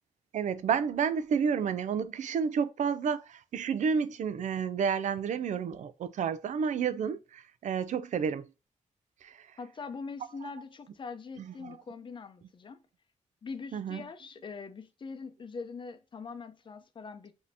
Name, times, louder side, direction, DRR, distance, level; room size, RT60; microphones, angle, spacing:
voice 1, 0.3-8.4 13.7-14.0, right 6 dB, 80° right, 0.4 m, -30 dB
voice 2, 9.6-12.8 13.4-17.3, left 4 dB, 40° left, 0.6 m, -42 dB
5.2 x 2.8 x 2.7 m
wide cardioid pair, 135°, 12 cm